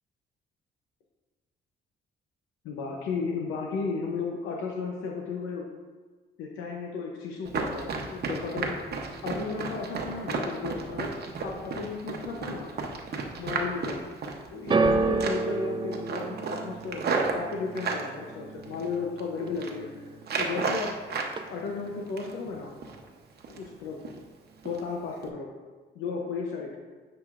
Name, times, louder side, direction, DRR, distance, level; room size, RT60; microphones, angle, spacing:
voice 1, 2.6-5.7 6.4-8.7 9.2-11.1 11.4-12.7 13.4-14.0 14.5-17.0 17.3-20.1 20.4-20.9 21.5-22.7 23.5-24.0 24.6-25.5 25.9-26.7, left 4 dB, 90° left, 0 dB, 0.7 m, -34 dB
Run, 7.4-14.9 15.2-15.6 15.9-18.1 18.6-19.2 19.5-19.7 20.2-21.3 21.7-22.5 22.8-23.0 23.4-23.7 24.0-24.2 24.6-24.8 25.2-25.3, right 4 dB, 55° right, 0.9 m, -32 dB
sound 1, 14.7-21.0 21.2-21.9 22.6-22.7, right 3 dB, 25° right, 0.4 m, -31 dB
9.4 x 4.9 x 2.5 m, 1.4 s
cardioid pair, 90°, 20 cm